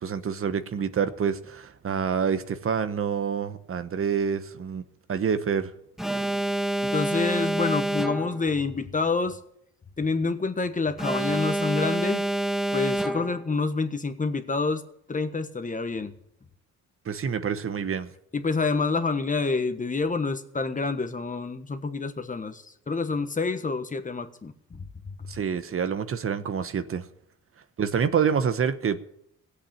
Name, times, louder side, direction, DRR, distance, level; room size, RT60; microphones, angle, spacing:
voice 1, 0.0-4.8 5.1-5.7 17.0-18.1 25.3-27.1 27.8-29.0, right 7 dB, 45° right, 1.1 m, -27 dB
Alarm, 6.0-8.5 11.0-13.5, right 1 dB, ahead, 0.8 m, -27 dB
voice 2, 6.8-9.4 10.0-12.2 12.7-14.8 15.1-16.1 18.3-24.8, left 4 dB, 25° left, 1.4 m, -27 dB
16.0 x 8.4 x 8.9 m
cardioid pair, 90°, 30 cm